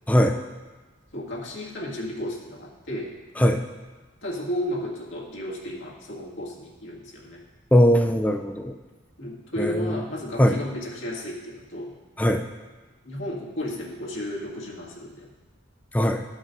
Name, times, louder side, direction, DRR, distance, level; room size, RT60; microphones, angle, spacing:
voice 1, 0.1-0.4 3.4-3.6 7.7-8.7 9.6-10.0 10.4-10.6 12.2-12.4 15.9-16.2, equal, 10° left, 6 dB, 0.4 m, -20 dB
voice 2, 1.1-3.2 4.2-7.4 9.2-11.9 13.0-15.3, left 1 dB, 75° left, -4 dB, 1.8 m, -33 dB
13.5 x 5.4 x 3.8 m, 1.3 s
head